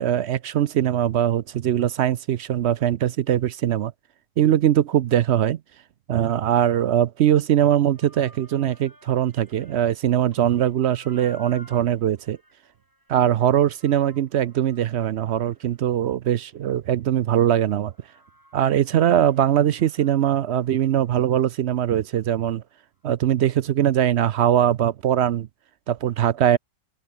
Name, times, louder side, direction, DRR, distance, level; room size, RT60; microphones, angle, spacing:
voice 1, 0.0-3.9 4.4-5.6 6.1-12.4 13.1-17.9 18.5-22.6 23.0-25.5 25.9-26.6, right 10 dB, 60° right, 0.7 m, -21 dB
sound 1, 7.6-10.0 10.3-17.4 17.9-21.2 21.5-21.6 22.2-22.3, right 1 dB, 15° right, 3.0 m, -54 dB
open air
omnidirectional pair, 1.5 m